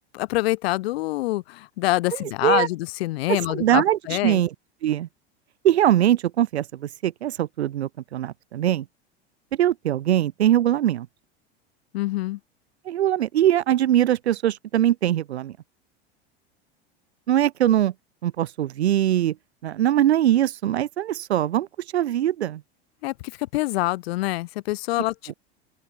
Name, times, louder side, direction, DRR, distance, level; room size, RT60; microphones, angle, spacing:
voice 1, 0.0-4.4 11.9-12.4 23.0-25.3, left 18 dB, 70° left, 2.6 m, -26 dB
voice 2, 3.5-4.5 4.8-5.1 5.6-8.9 9.6-11.1 12.9-15.6 17.3-17.9 18.2-19.4 19.6-21.7 21.9-22.6, right 12 dB, 80° right, 2.5 m, -22 dB
open air
hypercardioid pair, 90°, 32 cm